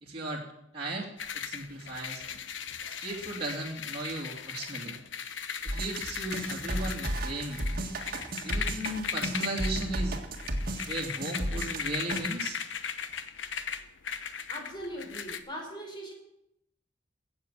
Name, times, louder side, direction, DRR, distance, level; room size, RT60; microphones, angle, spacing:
voice 1, 0.0-0.4 0.7-1.1 1.3-2.2 2.9-4.9 5.6-7.6 8.4-10.2 10.9-12.6, right 2 dB, 30° right, -4 dB, 2.4 m, -36 dB
sound 1, 1.2-15.4, left 7 dB, 90° left, 1.0 m, -38 dB
sound 2, 5.7-12.2, right 1 dB, 50° right, 1.8 m, -33 dB
voice 2, 14.5-16.1, equal, 25° left, 0 dB, 4.5 m, -40 dB
17.0 x 7.2 x 7.4 m, 0.80 s
head